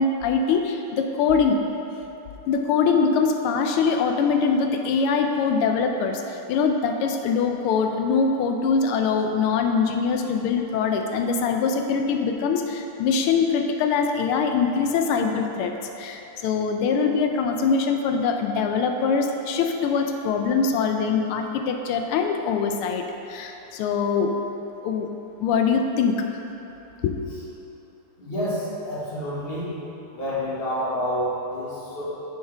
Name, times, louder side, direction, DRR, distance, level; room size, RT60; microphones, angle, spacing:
voice 1, 0.0-1.6 2.5-23.0 23.3-24.3 24.8-25.1 25.4-26.3 27.0-27.2, left 5 dB, 90° left, 4 dB, 1.5 m, -23 dB
voice 2, 28.2-29.7 30.1-32.0, equal, 30° left, -7 dB, 1.8 m, -28 dB
10.0 x 6.6 x 3.4 m, 2.9 s
omnidirectional pair, 2.4 m